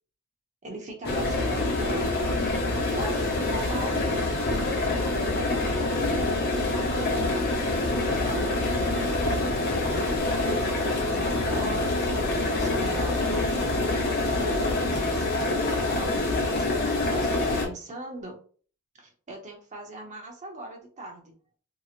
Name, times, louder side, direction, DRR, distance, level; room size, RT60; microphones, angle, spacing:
voice 1, 0.6-2.4 2.9-4.2 5.4-6.7 8.0-10.0 10.4-11.9 12.4-14.0 14.4-18.4 19.0-21.3, right 2 dB, 35° right, 1 dB, 0.8 m, -40 dB
sound 1, 1.0-17.7, left 2 dB, 45° left, 0.8 m, -26 dB
3.1 x 2.8 x 2.4 m, 0.43 s
head